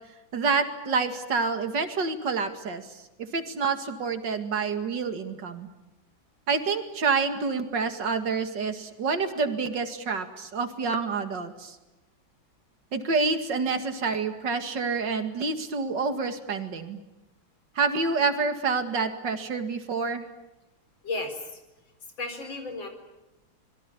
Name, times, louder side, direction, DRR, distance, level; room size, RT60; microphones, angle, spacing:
voice 1, 0.3-5.7 6.5-11.8 12.9-17.0 17.8-20.3, right 4 dB, 60° right, 8 dB, 2.7 m, -28 dB
voice 2, 21.0-21.6 22.2-22.9, left 3 dB, 70° left, 6 dB, 5.1 m, -33 dB
25.5 x 22.5 x 8.6 m, 0.98 s
omnidirectional pair, 2.2 m